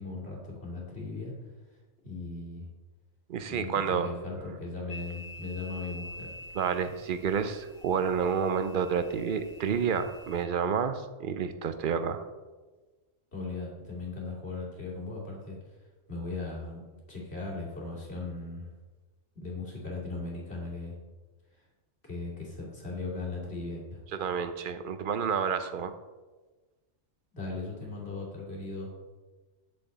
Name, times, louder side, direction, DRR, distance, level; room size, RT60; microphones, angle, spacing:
voice 1, 0.0-1.3 2.0-2.7 3.5-6.3 13.3-15.8 16.1-16.8 17.1-18.7 19.3-21.0 21.5-21.6 22.0-24.0 27.3-28.9, left 3 dB, 55° left, -4 dB, 2.8 m, -38 dB
voice 2, 3.3-4.1 6.5-12.2 24.1-25.9, right 7 dB, 55° right, 10 dB, 0.6 m, -29 dB
sound 1, 4.9-10.4, left 2 dB, 85° left, 1.1 m, -47 dB
9.6 x 7.0 x 4.0 m, 1.3 s
omnidirectional pair, 1.3 m